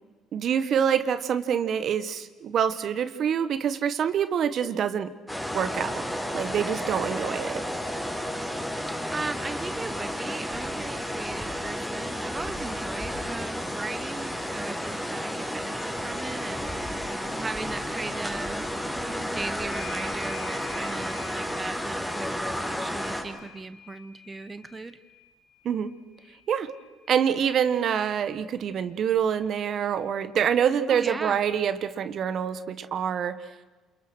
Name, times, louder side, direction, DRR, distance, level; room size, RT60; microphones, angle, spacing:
voice 1, 0.3-5.1 5.5-6.0 6.3-7.6 25.6-25.9 26.5-26.7 27.1-33.4, right 8 dB, 55° right, 13 dB, 1.5 m, -26 dB
sound 1, 5.3-23.2, equal, ahead, 5.2 m, -32 dB
voice 2, 9.1-16.8 17.3-25.0 30.9-31.4, right 3 dB, 20° right, 12 dB, 1.2 m, -37 dB
sound 2, 19.7-27.8 29.1-29.2 29.5-30.5, left 8 dB, 40° left, 2.8 m, -50 dB
28.5 x 28.5 x 6.3 m, 1.3 s
cardioid pair, 95°, 0 cm